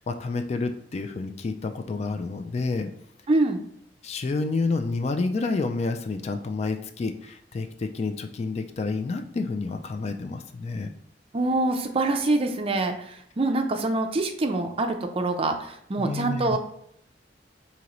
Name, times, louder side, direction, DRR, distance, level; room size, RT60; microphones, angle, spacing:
voice 1, 0.1-2.9 4.0-10.9 16.0-16.6, left 3 dB, 35° left, 6 dB, 0.3 m, -29 dB
voice 2, 3.3-3.6 11.3-16.6, right 2 dB, 35° right, 5 dB, 0.5 m, -25 dB
5.1 x 2.8 x 3.0 m, 0.70 s
head